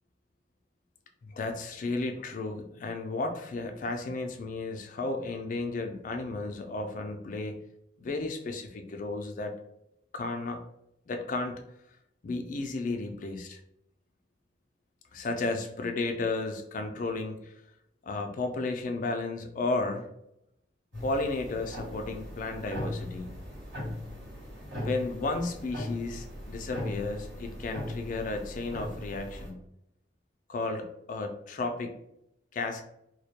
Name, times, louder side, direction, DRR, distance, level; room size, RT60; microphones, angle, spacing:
voice 1, 1.3-7.7 8.0-9.6 10.1-10.6 11.1-11.6 12.2-13.6 15.1-17.5 18.0-20.1 21.0-23.3 24.8-29.6 30.5-32.0 32.5-32.8, left 3 dB, 45° left, 5 dB, 0.3 m, -33 dB
sound 1, 20.9-29.5, left 1 dB, 75° right, 1.3 m, -39 dB
2.2 x 2.1 x 2.8 m, 0.79 s
head